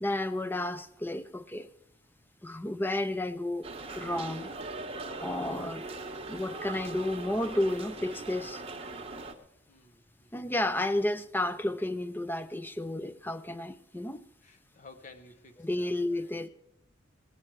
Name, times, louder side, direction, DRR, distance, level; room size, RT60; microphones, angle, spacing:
voice 1, 0.0-1.7 2.4-3.7 4.0-4.5 5.2-5.8 6.3-8.6 10.3-14.2 15.6-16.5, left 1 dB, 10° left, 0.5 m, -32 dB
sound 1, 3.6-9.3, right 2 dB, 30° right, 1.1 m, -40 dB
voice 2, 9.7-10.5 14.4-16.3, left 3 dB, 45° left, 0.8 m, -54 dB
18.5 x 8.8 x 4.6 m
head